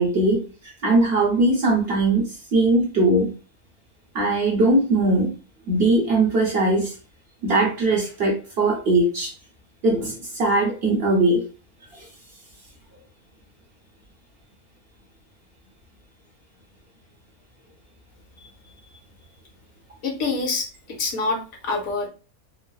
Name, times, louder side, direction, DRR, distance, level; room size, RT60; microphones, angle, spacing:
voice 1, 0.0-3.3 4.1-5.3 5.7-6.9 7.4-9.3 9.8-11.4, right 2 dB, 55° right, -1 dB, 0.8 m, -20 dB
voice 2, 20.0-20.7 21.0-22.1, left 3 dB, 70° left, 2 dB, 1.2 m, -25 dB
3.1 x 2.0 x 2.2 m, 0.34 s
omnidirectional pair, 1.5 m